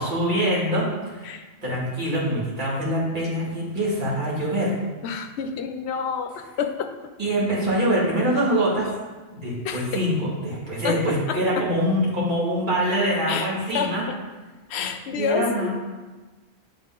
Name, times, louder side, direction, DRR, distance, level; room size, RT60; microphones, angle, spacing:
voice 1, 0.0-1.3 1.6-4.8 7.2-8.9 9.3-14.0 15.1-15.7, equal, 50° right, -6 dB, 2.1 m, -24 dB
voice 2, 5.0-6.9 9.6-9.8 10.8-11.0 11.3-11.4 13.3-13.5 13.7-14.2 14.7-15.7, left 6 dB, 80° left, 7 dB, 0.8 m, -28 dB
8.2 x 3.3 x 3.7 m, 1.2 s
omnidirectional pair, 1.1 m